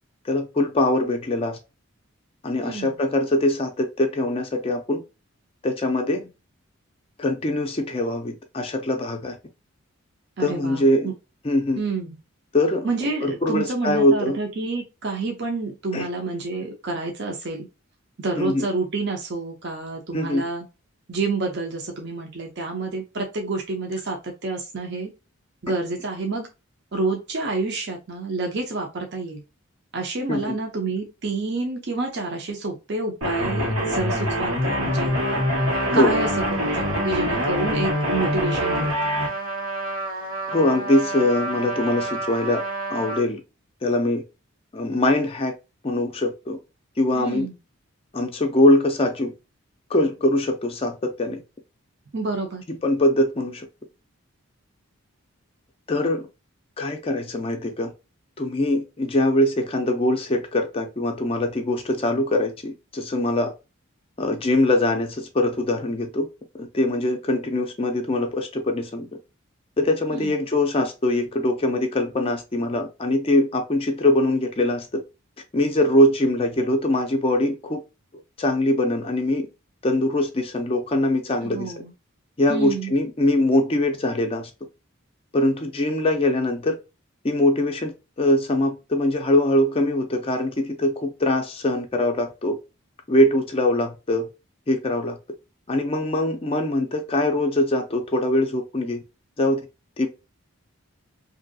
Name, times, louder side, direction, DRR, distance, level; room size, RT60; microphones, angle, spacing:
voice 1, 0.2-1.6 2.4-5.0 5.6-6.2 7.2-9.4 10.4-11.1 11.4-11.8 12.5-12.9 13.2-14.4 15.9-16.1 18.4-18.6 20.1-20.4 30.3-30.6 35.9-36.1 40.5-42.6 42.9-43.4 43.8-44.2 44.7-45.5 45.8-46.6 47.0-47.5 48.1-49.3 49.9-51.4 52.7-53.7 55.9-56.2 56.8-57.9 58.4-63.5 64.2-66.3 66.5-69.1 69.8-75.0 75.5-77.8 78.4-79.5 79.8-81.7 82.4-84.5 85.3-86.8 87.2-92.6 93.1-94.3 94.7-95.2 95.7-99.0 99.4-99.6 100.0-100.1, left 1 dB, 25° left, 0.4 m, -22 dB
voice 2, 2.6-2.9 10.4-11.1 11.8-12.2 12.8-17.7 18.2-20.6 21.1-25.1 25.6-26.5 26.9-29.4 29.9-35.1 35.9-39.2 47.1-47.5 52.1-52.6 70.1-70.3 81.4-81.9 82.5-82.9, right 3 dB, 50° right, 0.6 m, -28 dB
sound 1, 33.2-39.3, equal, 85° right, 1.4 m, -24 dB
Trumpet, 34.7-43.2, right 2 dB, 70° right, 1.4 m, -31 dB
2.9 x 2.6 x 2.6 m
head